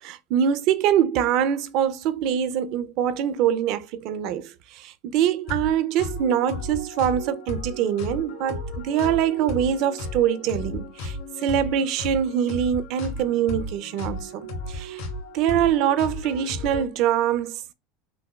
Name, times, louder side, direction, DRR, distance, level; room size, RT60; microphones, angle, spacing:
voice 1, 0.0-11.2 11.4-15.0 15.3-17.6, right 9 dB, 60° right, 0.5 m, -24 dB
sound 1, 5.4-16.8, left 2 dB, 75° left, 2.4 m, -34 dB
5.8 x 2.4 x 2.3 m
supercardioid pair, 115°, 0 cm